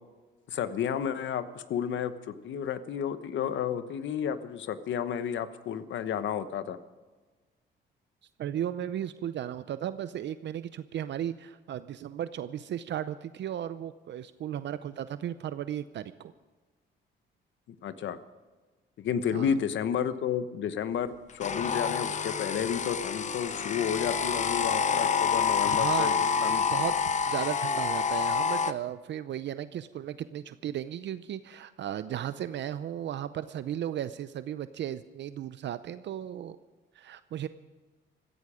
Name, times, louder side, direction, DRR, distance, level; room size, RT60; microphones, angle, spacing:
voice 1, 0.5-6.8 17.8-18.2 19.0-26.6, left 8 dB, 70° left, 12 dB, 1.1 m, -31 dB
voice 2, 8.4-16.3 19.3-19.5 25.6-26.9 27.3-36.6 36.9-37.5, right 10 dB, 65° right, 13 dB, 0.6 m, -35 dB
sound 1, 21.4-28.7, left 6 dB, 35° left, 0.8 m, -28 dB
16.0 x 15.0 x 5.0 m, 1.3 s
cardioid pair, 90°, 20 cm